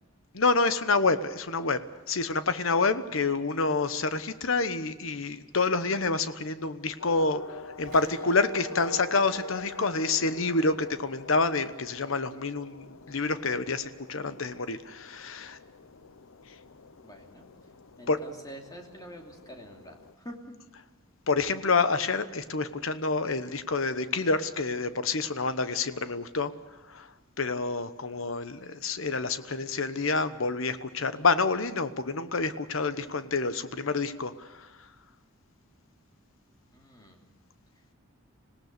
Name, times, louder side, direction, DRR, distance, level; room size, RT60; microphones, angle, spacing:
voice 1, 0.3-1.8 2.1-15.6 18.1-18.2 21.3-26.5 26.9-27.1 27.4-34.7, left 3 dB, 70° left, 12 dB, 1.1 m, -28 dB
sound 1, 7.0-20.1, left 3 dB, 90° left, 0.7 m, -45 dB
sound 2, 7.6-11.1 11.4-11.5, right 2 dB, 40° right, 5.8 m, -56 dB
voice 2, 17.0-17.5 18.0-20.4 36.7-37.4, equal, 20° left, 1 dB, 2.8 m, -46 dB
26.0 x 18.0 x 6.8 m, 1.2 s
head